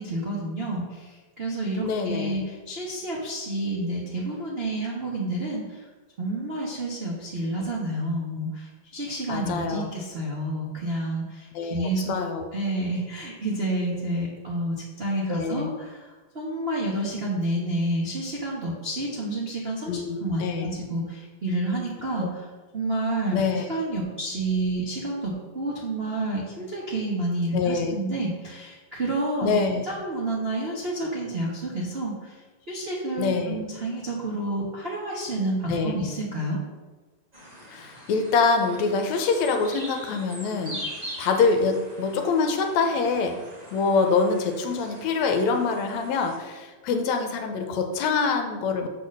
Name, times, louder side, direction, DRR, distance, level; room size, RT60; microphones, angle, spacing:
voice 1, 0.0-5.8 6.2-12.2 12.5-16.1 16.3-22.5 22.7-23.4 23.7-29.6 29.9-32.3 32.7-36.6, right 1 dB, 85° right, -4 dB, 0.5 m, -29 dB
voice 2, 1.8-2.4 9.3-9.9 11.5-12.5 15.3-15.7 19.9-20.8 22.2-22.3 23.3-23.7 27.5-28.0 29.4-29.8 33.2-33.6 35.7-36.0 37.7-40.9 41.2-43.4 43.7-48.9, left 4 dB, 75° left, 5 dB, 2.0 m, -25 dB
sound 1, 37.3-46.4, equal, 20° right, 1.3 m, -42 dB
7.5 x 4.2 x 6.5 m, 1.3 s
omnidirectional pair, 3.3 m